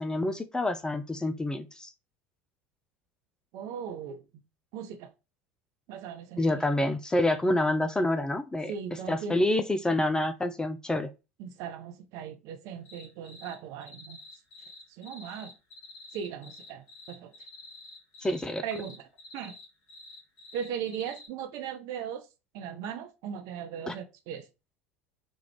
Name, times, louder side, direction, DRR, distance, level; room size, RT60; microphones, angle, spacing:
voice 1, 0.0-1.9 6.4-8.7 9.1-11.1 18.2-18.6 23.9-24.0, left 1 dB, 10° left, 0.3 m, -27 dB
voice 2, 3.5-4.2 4.7-5.1 5.9-6.6 8.7-9.4 11.4-14.2 14.9-15.5 16.1-17.3 18.6-19.1 19.3-19.5 20.5-22.3 22.5-24.5, right 8 dB, 50° right, 0.5 m, -38 dB
sound 1, 12.7-13.6 13.8-21.3, left 2 dB, 55° left, 1.3 m, -48 dB
3.0 x 2.4 x 3.3 m
figure-of-eight pair, 75°, 7 cm